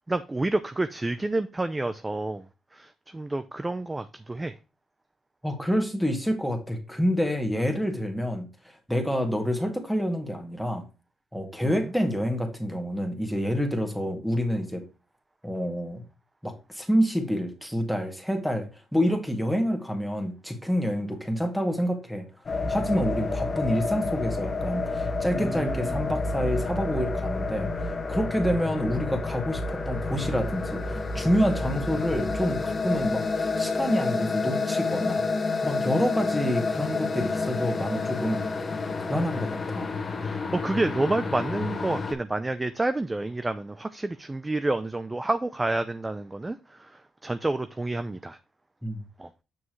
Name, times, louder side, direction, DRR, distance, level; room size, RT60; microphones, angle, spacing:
voice 1, 0.1-2.4 2.7-4.5 11.6-11.7 25.3-26.0 40.2-46.8 47.2-48.4 49.2-49.3, right 2 dB, 15° right, 11 dB, 0.5 m, -29 dB
voice 2, 5.4-8.5 8.9-10.8 11.3-14.8 15.4-16.0 16.4-18.7 18.9-22.3 22.7-35.2 35.6-38.4 39.1-39.9 48.8-49.0, equal, ahead, 4 dB, 2.0 m, -27 dB
sound 1, 22.5-42.1, left 3 dB, 35° left, 1.3 m, -29 dB
7.3 x 6.1 x 3.1 m, 0.31 s
cardioid pair, 90°, 0 cm